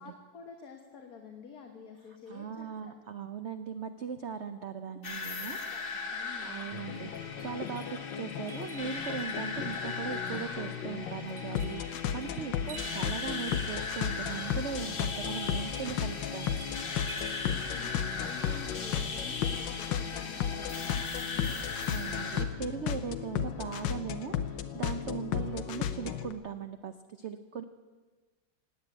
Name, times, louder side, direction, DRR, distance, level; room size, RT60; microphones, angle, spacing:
voice 1, 0.0-2.9 5.7-6.6 12.3-12.5 17.8-21.4, left 6 dB, 55° left, 2 dB, 1.8 m, -49 dB
voice 2, 2.3-5.6 6.4-7.1 7.4-16.5 21.9-27.6, right 7 dB, 85° right, 9 dB, 0.6 m, -39 dB
sound 1, 5.0-22.4, left 4 dB, 35° left, 1.2 m, -38 dB
sound 2, 6.7-26.3, left 9 dB, 80° left, 1.5 m, -35 dB
sound 3, 6.8-19.9, right 4 dB, 45° right, 1.4 m, -52 dB
18.5 x 8.4 x 9.0 m, 1.3 s
omnidirectional pair, 2.1 m